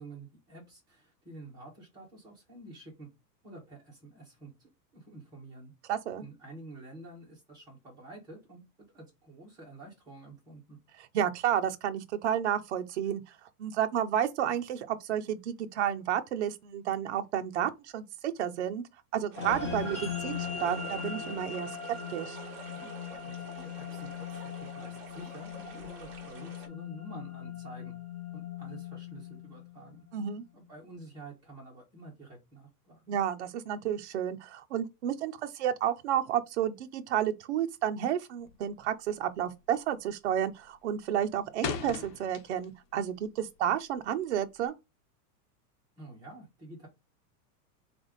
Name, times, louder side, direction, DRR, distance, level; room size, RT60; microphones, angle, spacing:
voice 1, 0.0-3.1 3.4-5.7 6.2-8.6 8.9-10.8 23.2-27.9 28.3-30.0 30.5-33.2 46.0-46.9, right 2 dB, 10° right, 1.4 m, -49 dB
voice 2, 5.9-6.3 11.1-13.2 13.6-18.8 19.1-21.7 22.1-22.4 30.1-30.4 33.1-44.7, right 10 dB, 45° right, 0.5 m, -31 dB
sound 1, 19.3-26.7, right 3 dB, 25° right, 0.9 m, -48 dB
sound 2, 19.4-30.0, left 6 dB, 20° left, 0.4 m, -39 dB
sound 3, 38.4-38.8 39.1-39.4 39.8-40.2 40.5-42.9 43.2-44.7, left 8 dB, 80° left, 1.2 m, -39 dB
4.0 x 3.3 x 3.9 m
supercardioid pair, 180°, 48 cm